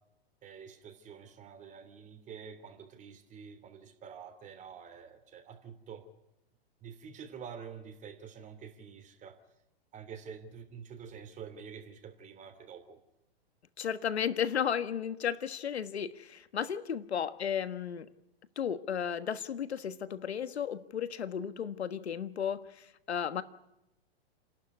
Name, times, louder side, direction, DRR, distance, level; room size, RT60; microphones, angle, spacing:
voice 1, 0.4-6.1 6.8-9.4 9.9-13.0 17.4-17.5, right 7 dB, 25° right, 8 dB, 2.9 m, -48 dB
voice 2, 13.8-18.1 18.6-23.4, left 8 dB, 85° left, 12 dB, 1.4 m, -34 dB
30.0 x 12.0 x 9.6 m, 0.90 s
hypercardioid pair, 130°, 32 cm